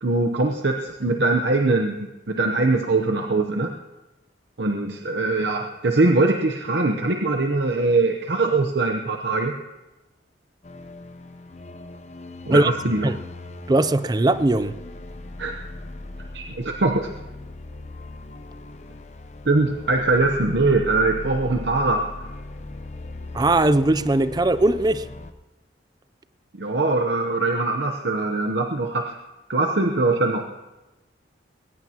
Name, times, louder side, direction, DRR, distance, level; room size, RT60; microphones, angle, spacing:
voice 1, 0.0-2.0 2.3-3.7 4.6-9.6 12.5-13.2 15.4-15.6 16.3-17.1 19.4-22.1 26.5-29.2 29.5-30.5, right 2 dB, 65° right, 0.9 m, -22 dB
sound 1, 10.6-25.3, left 2 dB, 40° left, 0.7 m, -39 dB
voice 2, 13.7-14.7 23.3-25.0, right 2 dB, 20° right, 0.4 m, -19 dB
21.0 x 18.0 x 2.9 m
head